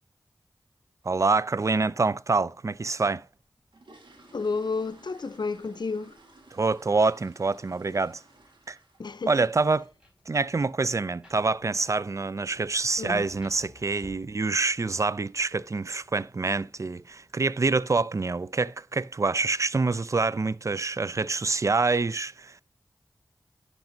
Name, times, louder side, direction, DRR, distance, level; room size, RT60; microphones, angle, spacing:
voice 1, 1.0-3.2 6.5-8.2 8.7-8.8 9.3-9.9 10.3-22.6, right 3 dB, 40° right, 0.3 m, -26 dB
sound 1, 3.4-9.3 9.5-9.8 10.2-10.3 10.6-10.8 11.2-11.4 11.6-11.7 12.3-12.4 12.7-12.8 13.3-13.7 13.9-14.0 14.4-14.6 15.0-15.1 15.5-15.6 16.2-16.5 16.8-17.2 17.5-17.6 18.1-18.2 18.9-19.1 19.5-19.9 20.4-20.5, right 2 dB, 85° right, 1.6 m, -56 dB
voice 2, 4.3-6.2 9.0-9.3 13.0-13.3, left 4 dB, 65° left, 0.6 m, -31 dB
Rain, 8.8-17.9, left 1 dB, 10° right, 3.9 m, -57 dB
10.5 x 5.3 x 2.6 m
cardioid pair, 40°, 8 cm